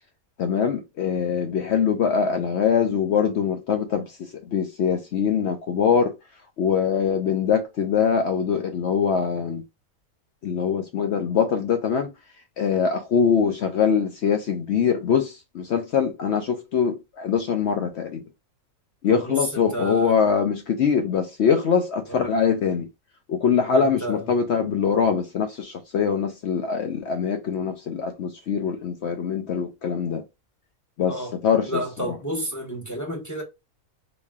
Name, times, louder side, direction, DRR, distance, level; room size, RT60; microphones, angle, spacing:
voice 1, 0.4-6.1 6.6-9.6 10.4-12.1 12.6-18.2 19.0-22.9 23.3-30.2 31.0-32.2, left 7 dB, 65° left, 0.7 m, -23 dB
voice 2, 19.1-20.1 22.1-22.2 23.7-24.3 31.1-31.3 31.7-33.4, equal, 15° left, 0.7 m, -31 dB
4.2 x 3.0 x 2.3 m
omnidirectional pair, 1.6 m